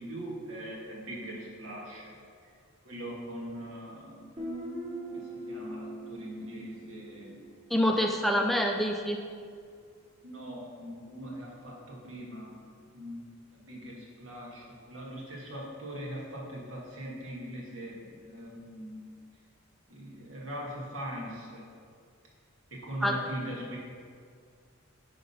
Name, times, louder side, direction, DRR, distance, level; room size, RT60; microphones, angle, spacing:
voice 1, 0.0-2.1 2.4-2.5 2.8-4.2 5.1-7.4 10.2-12.6 12.9-19.0 19.9-21.7 22.7-23.8, equal, 80° right, -3 dB, 2.1 m, -41 dB
Guitar, 4.4-8.0, right 1 dB, 35° right, 1.6 m, -41 dB
voice 2, 7.7-9.2 23.0-23.1, equal, ahead, 2 dB, 0.4 m, -26 dB
10.5 x 3.8 x 5.6 m, 2.2 s
head